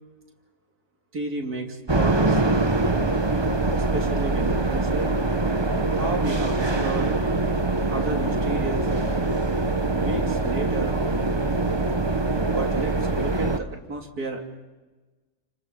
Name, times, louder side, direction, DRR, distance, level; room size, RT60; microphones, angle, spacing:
voice 1, 1.1-2.7 3.7-5.2 5.9-7.1 7.9-8.9 9.9-11.3 12.5-14.6, right 3 dB, 80° right, 2 dB, 3.4 m, -33 dB
sound 1, 1.9-13.6, right 2 dB, 20° right, 1.1 m, -23 dB
29.5 x 27.0 x 5.4 m, 1.2 s
omnidirectional pair, 1.6 m